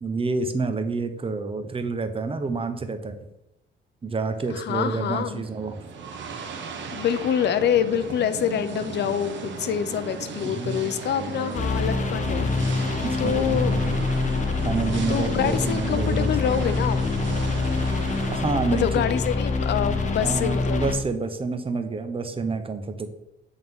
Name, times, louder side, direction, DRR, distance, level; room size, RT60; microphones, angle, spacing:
voice 1, 0.0-3.2 4.0-5.8 10.4-10.9 13.0-14.0 14.6-16.5 18.3-19.0 19.9-23.1, right 4 dB, 30° right, 8 dB, 0.7 m, -28 dB
sound 1, 4.3-18.4, right 5 dB, 70° right, 1.0 m, -36 dB
voice 2, 4.5-5.4 6.9-12.5 12.7-12.9 13.2-13.7 15.1-17.0 18.7-20.8, left 9 dB, 60° left, 13 dB, 0.5 m, -26 dB
sound 2, 11.5-20.9, left 3 dB, 40° left, 0.9 m, -25 dB
7.8 x 3.7 x 3.6 m, 0.86 s
cardioid pair, 90°, 20 cm